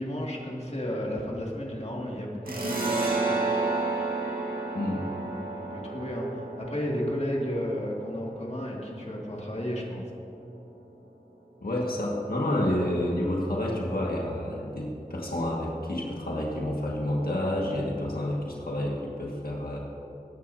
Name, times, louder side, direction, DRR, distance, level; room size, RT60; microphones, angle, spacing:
voice 1, 0.0-3.1 5.2-5.3 5.7-10.0, equal, 45° left, -3 dB, 2.2 m, -33 dB
sound 1, 2.5-9.6, right 3 dB, 75° right, 1.9 m, -31 dB
voice 2, 4.7-5.1 11.6-19.8, left 1 dB, 85° left, -3 dB, 1.8 m, -29 dB
21.5 x 10.0 x 2.8 m, 3.0 s
wide cardioid pair, 45°, 15 cm